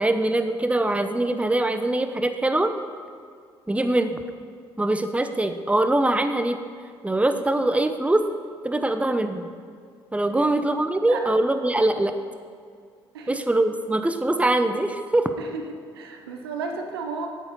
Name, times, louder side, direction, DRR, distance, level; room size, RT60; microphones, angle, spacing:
voice 1, 0.0-2.7 3.7-4.2 4.8-6.6 7.0-8.3 8.6-9.5 10.1-12.1 13.3-15.3, right 1 dB, 10° right, 8 dB, 0.8 m, -23 dB
voice 2, 15.9-17.3, right 4 dB, 85° right, 4 dB, 0.8 m, -33 dB
9.1 x 8.8 x 5.4 m, 2.1 s
hypercardioid pair, 45°, 12 cm